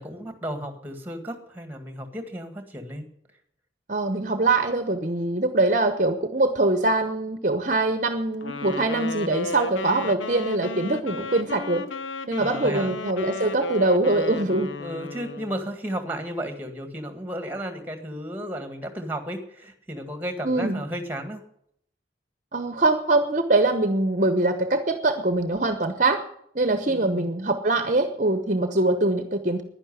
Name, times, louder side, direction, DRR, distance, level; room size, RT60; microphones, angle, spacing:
voice 1, 0.0-3.0 10.0-10.1 12.4-12.9 14.8-21.4 26.9-27.3, equal, 10° right, 7 dB, 1.8 m, -33 dB
voice 2, 3.9-11.8 12.3-14.7 20.4-20.8 22.5-26.2 26.5-29.6, right 2 dB, 40° right, 8 dB, 1.0 m, -23 dB
Wind instrument woodwind instrument, 8.4-15.6, left 3 dB, 90° left, 0.9 m, -34 dB
11.0 x 10.5 x 9.6 m, 0.71 s
head